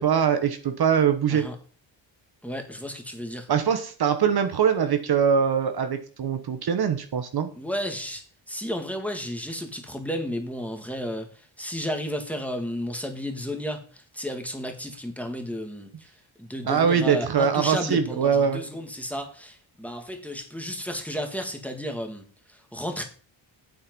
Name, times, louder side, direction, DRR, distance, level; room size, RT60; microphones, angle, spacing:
voice 1, 0.0-1.5 3.5-7.5 16.7-18.6, right 7 dB, 55° right, 8 dB, 1.1 m, -22 dB
voice 2, 2.4-3.5 7.5-16.1 16.4-22.2 22.5-23.0, equal, 5° left, 4 dB, 1.8 m, -33 dB
8.9 x 7.8 x 5.3 m, 0.40 s
wide cardioid pair, 145°, 47 cm